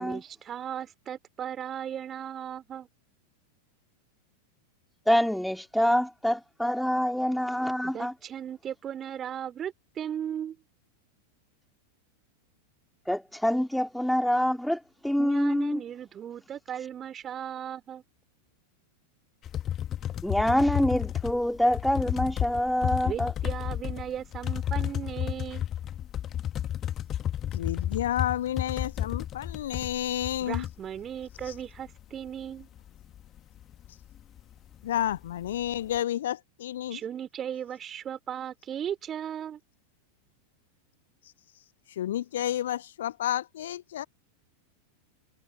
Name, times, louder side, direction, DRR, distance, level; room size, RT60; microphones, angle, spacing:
voice 1, 0.0-2.9 7.8-10.6 15.2-18.0 23.0-25.7 30.4-32.7 36.9-39.6, right 9 dB, 25° right, 3.7 m, -37 dB
voice 2, 5.1-8.1 13.1-15.8 20.2-23.3, equal, ahead, 2.5 m, -26 dB
sound 1, 19.5-32.0 32.3-32.4 32.6-34.4 34.7-34.8 35.1-36.0, left 11 dB, 30° left, 1.8 m, -32 dB
voice 3, 27.5-30.6 31.5-31.6 34.8-37.0 41.9-44.1, left 12 dB, 60° left, 0.6 m, -30 dB
figure-of-eight pair, 90°, 0 cm